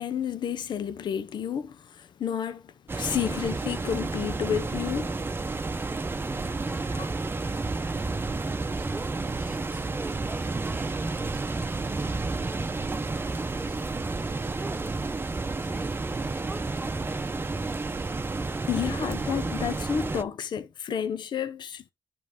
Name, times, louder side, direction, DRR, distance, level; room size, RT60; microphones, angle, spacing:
voice 1, 0.0-5.2 6.9-7.1 18.7-21.9, left 8 dB, 70° left, 0.6 m, -31 dB
sound 1, 2.9-20.2, right 3 dB, 30° right, 0.6 m, -31 dB
voice 2, 6.4-7.4 7.8-8.1 8.8-12.1 12.4-15.1 15.6-15.9 16.2-18.1, right 2 dB, 10° right, 1.0 m, -46 dB
10.5 x 3.7 x 3.6 m
cardioid pair, 60°, 8 cm